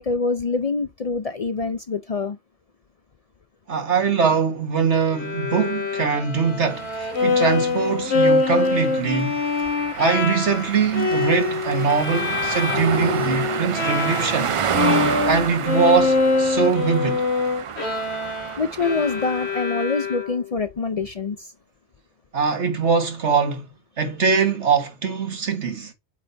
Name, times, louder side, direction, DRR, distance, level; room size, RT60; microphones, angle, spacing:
voice 1, 0.0-2.4 18.6-21.5, left 4 dB, 45° left, 0.5 m, -25 dB
voice 2, 3.7-9.4 10.0-14.5 15.2-17.2 22.3-23.7 24.0-25.9, right 5 dB, 85° right, 1.8 m, -22 dB
Bowed string instrument, 5.1-14.5 14.7-20.6, left 3 dB, 70° left, 2.3 m, -24 dB
sound 1, 6.7-19.7, right 7 dB, 60° right, 0.3 m, -30 dB
8.2 x 4.2 x 3.3 m
omnidirectional pair, 1.2 m